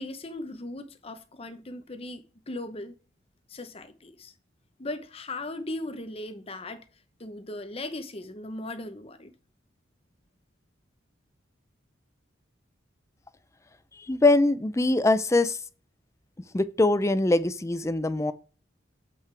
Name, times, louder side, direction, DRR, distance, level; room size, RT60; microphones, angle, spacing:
voice 1, 0.0-3.0 3.5-4.3 4.8-6.9 7.2-9.3, left 2 dB, 30° left, 0.9 m, -38 dB
voice 2, 14.0-15.6 16.5-18.3, left 2 dB, 15° left, 0.5 m, -23 dB
7.9 x 5.7 x 3.3 m
head